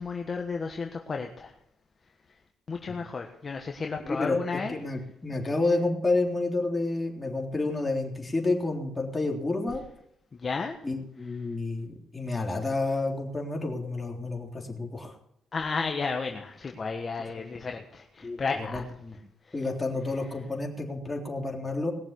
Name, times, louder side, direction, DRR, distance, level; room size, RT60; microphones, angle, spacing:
voice 1, 0.0-1.5 2.7-4.8 10.3-10.7 15.5-18.8, left 4 dB, 35° left, 3 dB, 1.4 m, -33 dB
voice 2, 4.0-4.4 4.7-9.8 10.8-15.1 17.4-17.5 18.2-19.2 19.5-21.9, left 2 dB, 20° left, 0 dB, 3.5 m, -30 dB
19.5 x 7.1 x 8.3 m, 0.76 s
cardioid pair, 90°, 0 cm